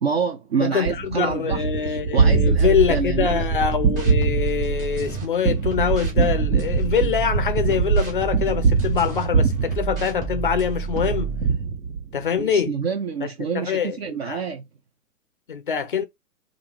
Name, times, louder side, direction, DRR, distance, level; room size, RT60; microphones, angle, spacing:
voice 1, 0.0-3.5 12.4-14.7, right 6 dB, 40° right, 0.6 m, -27 dB
voice 2, 0.6-11.3 12.1-12.7 13.2-13.3 13.5-14.4 15.5-16.0, left 7 dB, 35° left, 0.4 m, -24 dB
Gunshot gunfire, 0.9-10.5 11.0-12.4, right 5 dB, 80° right, 1.3 m, -23 dB
sound 1, 2.2-5.2 5.7-9.2 9.7-11.5, right 6 dB, 25° right, 2.7 m, -30 dB
5.3 x 2.6 x 2.9 m
hypercardioid pair, 155°, 48 cm